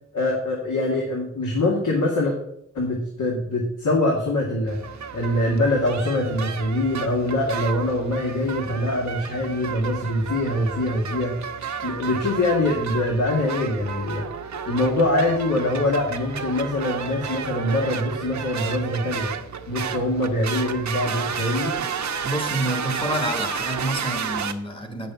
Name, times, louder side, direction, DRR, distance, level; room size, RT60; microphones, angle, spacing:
voice 1, 0.1-2.3 2.7-11.5 11.8-14.3 14.7-19.3 19.7-21.8, left 1 dB, 80° left, 2.2 m, -24 dB
sound 1, 4.7-24.5, right 7 dB, 65° right, 0.9 m, -32 dB
voice 2, 22.2-25.1, right 1 dB, 15° left, 1.3 m, -28 dB
9.1 x 6.8 x 5.8 m
wide cardioid pair, 175°, 30 cm